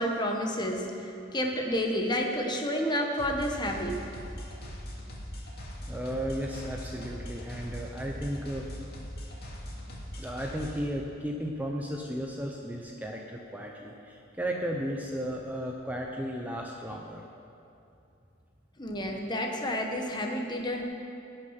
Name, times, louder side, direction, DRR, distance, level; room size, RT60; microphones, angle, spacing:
voice 1, 0.0-4.0 18.8-20.8, equal, 20° left, 2 dB, 1.2 m, -30 dB
sound 1, 3.2-10.8, equal, 50° left, 2.2 m, -41 dB
voice 2, 5.9-8.7 10.2-17.2, equal, 10° right, 0 dB, 0.6 m, -34 dB
17.0 x 6.3 x 5.8 m, 2.7 s
head